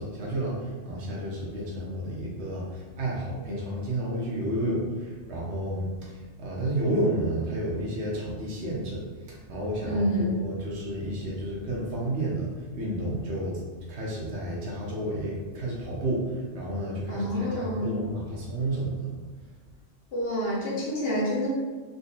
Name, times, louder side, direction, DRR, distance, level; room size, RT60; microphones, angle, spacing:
voice 1, 0.0-9.0 9.5-12.5 12.7-13.6 13.9-19.0, right 1 dB, 65° right, -5 dB, 1.1 m, -31 dB
voice 2, 9.8-10.4 17.1-18.0 20.1-21.5, equal, 55° left, -6 dB, 1.2 m, -28 dB
3.9 x 2.6 x 2.5 m, 1.4 s
omnidirectional pair, 1.3 m